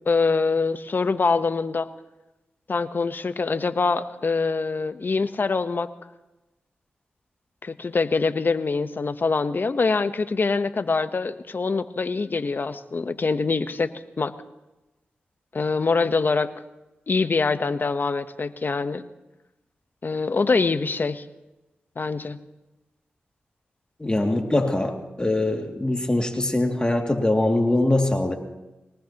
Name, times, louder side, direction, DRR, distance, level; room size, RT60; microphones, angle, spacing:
voice 1, 0.1-1.9 2.7-5.9 7.6-14.3 15.5-16.5 17.1-19.0 20.0-21.2 22.0-22.4, left 4 dB, 50° left, 11 dB, 1.0 m, -24 dB
voice 2, 24.0-28.4, left 1 dB, 20° left, 2 dB, 2.4 m, -22 dB
23.0 x 18.5 x 3.0 m, 1.0 s
cardioid pair, 45°, 4 cm